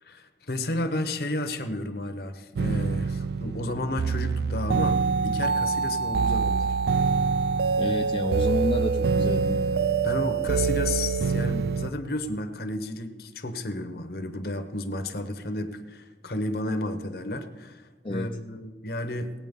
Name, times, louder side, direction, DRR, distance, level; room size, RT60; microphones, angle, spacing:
voice 1, 0.0-6.8 10.0-19.3, left 1 dB, 55° left, 7 dB, 1.0 m, -32 dB
sound 1, 2.6-11.9, right 5 dB, 60° right, 0.3 m, -25 dB
voice 2, 7.8-9.6 18.0-18.3, left 1 dB, 30° left, 1 dB, 0.5 m, -30 dB
17.5 x 8.7 x 5.3 m, 1.3 s
head